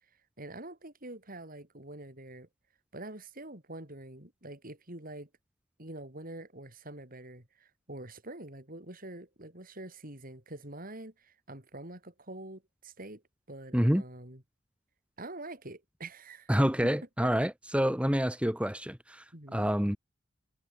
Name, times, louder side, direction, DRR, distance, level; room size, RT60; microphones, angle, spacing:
voice 1, 0.4-2.5 2.9-5.3 5.8-13.2 13.5-14.4 15.2-16.5 16.8-16.9 17.2-17.3 19.3-19.7, right 2 dB, 45° right, 6.8 m, -45 dB
voice 2, 16.5-19.2 19.5-20.0, equal, 5° right, 4.2 m, -27 dB
head